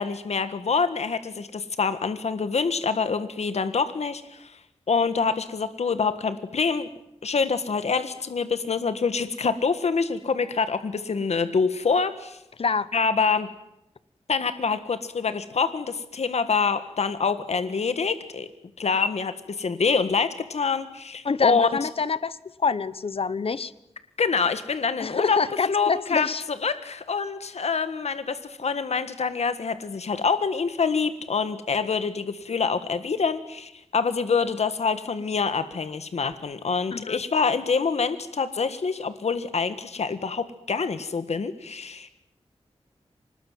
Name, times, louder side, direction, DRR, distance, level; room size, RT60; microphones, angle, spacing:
voice 1, 0.0-4.6 4.9-6.9 7.2-12.4 12.9-13.5 14.3-18.5 18.8-21.9 24.2-25.4 25.7-42.1, left 5 dB, 80° left, 11 dB, 1.6 m, -26 dB
voice 2, 12.6-12.9 21.2-23.7 25.0-26.4 36.9-37.2, left 5 dB, 60° left, 16 dB, 1.1 m, -26 dB
25.5 x 20.5 x 9.4 m, 0.84 s
wide cardioid pair, 100°, 11 cm